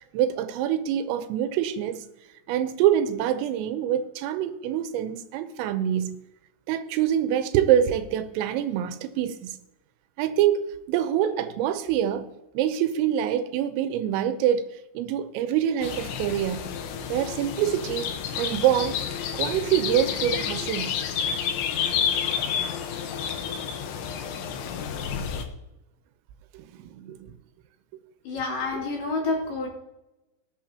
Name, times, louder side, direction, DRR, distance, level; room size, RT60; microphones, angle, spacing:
voice 1, 0.1-2.0 2.5-6.2 6.7-9.6 10.2-10.6 10.9-12.3 12.5-14.7 14.9-16.6 17.1-18.1 18.4-19.0 19.3-20.9 26.5-27.3, right 10 dB, 85° right, 3.4 m, -25 dB
sound 1, 15.8-25.4, left 8 dB, 75° left, 3.2 m, -30 dB
voice 2, 28.2-29.7, left 3 dB, 55° left, 4.5 m, -28 dB
19.5 x 9.2 x 2.9 m
omnidirectional pair, 5.9 m